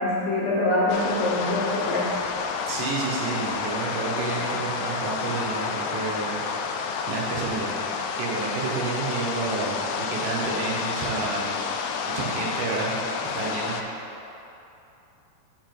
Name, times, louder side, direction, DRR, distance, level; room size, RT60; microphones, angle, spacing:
voice 1, 0.0-2.1, left 2 dB, 70° left, -7 dB, 2.9 m, -24 dB
sound 1, 0.9-13.8, left 5 dB, 85° left, 2.3 m, -30 dB
voice 2, 2.7-6.5 7.1-7.7 8.1-11.5 12.1-12.9 13.2-13.8, right 4 dB, 90° right, -3 dB, 3.3 m, -30 dB
7.4 x 5.2 x 4.6 m, 2.9 s
omnidirectional pair, 4.9 m